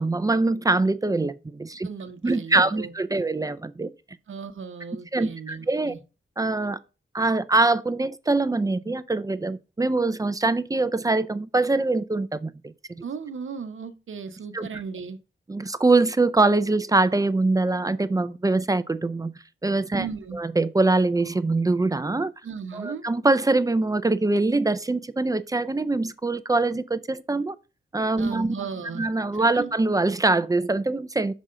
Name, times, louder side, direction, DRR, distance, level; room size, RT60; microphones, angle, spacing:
voice 1, 0.0-1.9 2.2-3.9 5.1-5.9 6.4-6.8 7.1-13.0 14.5-14.7 15.5-19.3 19.6-20.1 20.3-22.3 22.7-27.6 27.9-28.6 28.9-31.3, right 2 dB, 20° right, 0.4 m, -23 dB
voice 2, 1.8-3.2 4.3-6.0 13.0-15.2 19.9-20.4 22.4-23.0 28.2-29.1 29.4-29.7, right 6 dB, 85° right, 0.8 m, -36 dB
6.1 x 3.8 x 5.5 m
wide cardioid pair, 130°, 20 cm